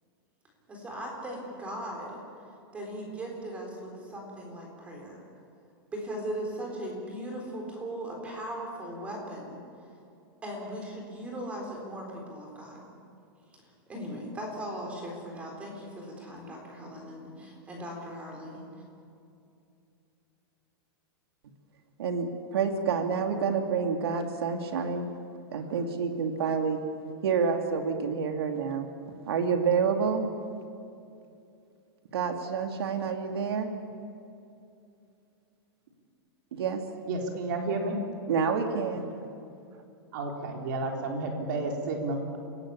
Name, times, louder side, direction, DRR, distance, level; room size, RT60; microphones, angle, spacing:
voice 1, 0.7-2.2 2.7-5.2 5.9-9.6 10.4-12.8 13.5-18.7, right 1 dB, 10° right, 0 dB, 3.9 m, -38 dB
voice 2, 22.0-25.1 25.5-26.8 27.2-28.9 29.3-30.3 32.1-33.7 36.5-36.8 38.3-39.1, right 6 dB, 75° right, 4 dB, 2.5 m, -28 dB
voice 3, 37.0-38.0 40.1-42.4, right 2 dB, 50° right, 1 dB, 3.9 m, -31 dB
28.5 x 17.5 x 8.7 m, 2.6 s
supercardioid pair, 180°, 13 cm